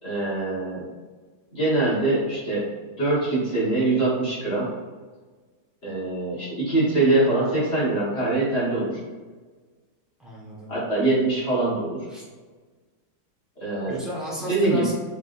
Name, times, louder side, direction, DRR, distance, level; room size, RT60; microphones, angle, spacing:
voice 1, 0.0-0.9 1.5-2.7 3.0-4.7 5.8-9.0 10.7-12.1 13.6-14.0 14.5-14.8, right 2 dB, 35° left, -8 dB, 1.5 m, -23 dB
voice 2, 10.2-10.7 12.1-12.2 13.8-14.9, equal, ahead, -7 dB, 1.0 m, -34 dB
5.1 x 3.5 x 2.6 m, 1.4 s
omnidirectional pair, 2.2 m